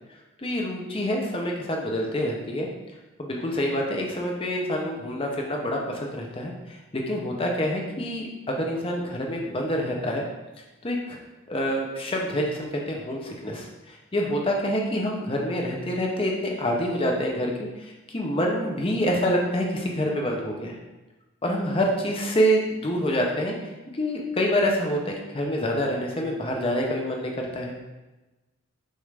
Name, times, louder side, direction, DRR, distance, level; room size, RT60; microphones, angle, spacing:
voice 1, 0.4-2.7 3.2-10.3 10.8-11.2 11.5-20.8 21.4-23.6 23.9-27.7, equal, 25° left, 0 dB, 0.6 m, -27 dB
6.4 x 2.5 x 3.3 m, 1.1 s
head